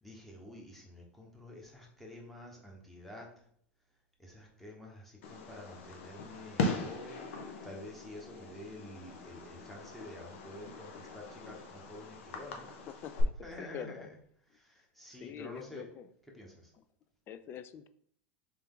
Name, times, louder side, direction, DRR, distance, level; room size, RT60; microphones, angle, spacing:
voice 1, 0.0-3.3 4.2-12.7 13.4-14.1 14.5-15.9 16.3-16.7, left 1 dB, 5° left, -2 dB, 1.0 m, -49 dB
Fireworks, 5.2-13.2, left 3 dB, 80° left, 0.8 m, -40 dB
voice 2, 12.9-13.3 13.6-14.1 15.2-16.1 17.3-17.9, left 8 dB, 35° left, 12 dB, 0.3 m, -45 dB
3.4 x 3.4 x 3.7 m, 0.64 s
supercardioid pair, 125°, 7 cm